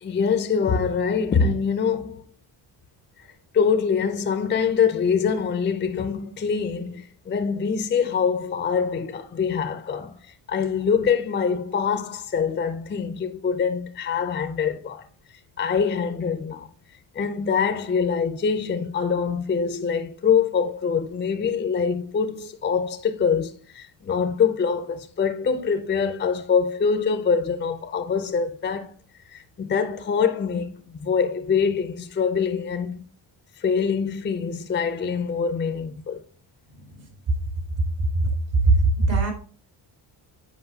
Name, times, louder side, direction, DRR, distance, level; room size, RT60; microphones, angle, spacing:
voice 1, 0.0-2.2 3.5-15.1 15.6-16.7 17.1-28.9 29.3-33.1 33.6-36.2, left 6 dB, 25° left, 0.4 m, -24 dB
voice 2, 36.7-37.1 37.8-37.9 38.1-39.3, right 2 dB, 70° right, 2.5 m, -21 dB
8.0 x 5.0 x 2.7 m
cardioid pair, 130°, 48 cm